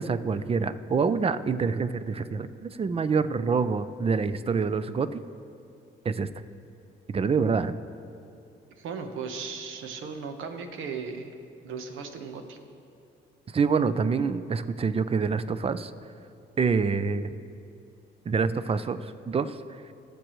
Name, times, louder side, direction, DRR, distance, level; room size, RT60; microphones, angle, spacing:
voice 1, 0.0-5.2 6.0-6.3 7.1-7.7 13.5-15.9 16.6-17.3 18.3-19.6, right 5 dB, 30° right, 13 dB, 0.5 m, -26 dB
voice 2, 8.8-11.3 11.6-12.6, right 5 dB, 80° right, 6 dB, 1.0 m, -36 dB
19.5 x 6.7 x 3.1 m, 2.6 s
cardioid pair, 90°, 20 cm